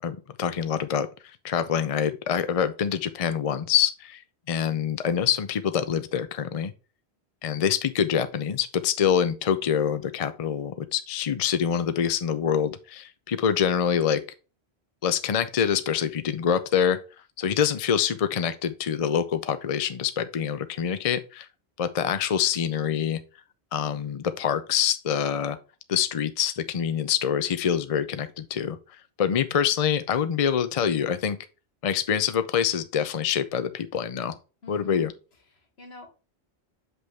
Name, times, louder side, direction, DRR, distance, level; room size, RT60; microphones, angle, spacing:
voice 1, 0.0-1.1 1.4-4.2 4.5-6.7 7.4-14.2 15.0-17.0 17.4-21.5 21.8-23.2 23.7-25.6 25.9-31.4 31.8-34.4 34.7-35.1, left 8 dB, 45° left, 0.5 m, -25 dB
voice 2, 34.6-35.1 35.5-36.1, left 4 dB, 70° left, 1.8 m, -45 dB
6.2 x 5.3 x 3.5 m
omnidirectional pair, 1.1 m